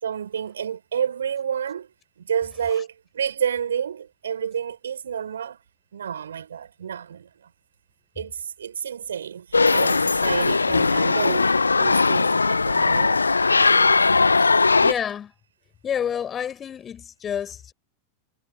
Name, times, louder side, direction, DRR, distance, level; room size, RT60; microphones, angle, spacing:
voice 1, 0.0-1.9 2.2-5.6 5.9-7.5 8.2-13.2 14.4-14.5, right 8 dB, 65° right, 5.2 m, -30 dB
sound 1, 9.5-14.9, left 4 dB, 80° left, 0.9 m, -19 dB
voice 2, 14.8-15.3 15.8-17.7, left 8 dB, 25° left, 6.3 m, -29 dB
figure-of-eight pair, 90°, 0 cm